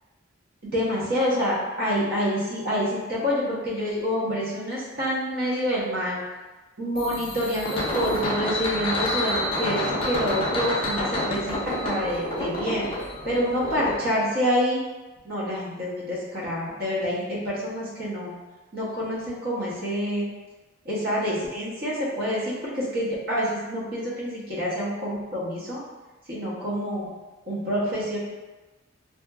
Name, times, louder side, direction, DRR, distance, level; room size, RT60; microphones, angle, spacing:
voice 1, 0.6-6.2 6.8-12.9 13.2-14.8 15.2-18.3 18.7-20.3 20.8-25.8 26.3-27.1 27.5-28.2, equal, 45° right, -7 dB, 0.7 m, -27 dB
sound 1, 7.0-13.9, left 1 dB, 25° left, 0.4 m, -28 dB
2.8 x 2.5 x 2.2 m, 1.2 s
head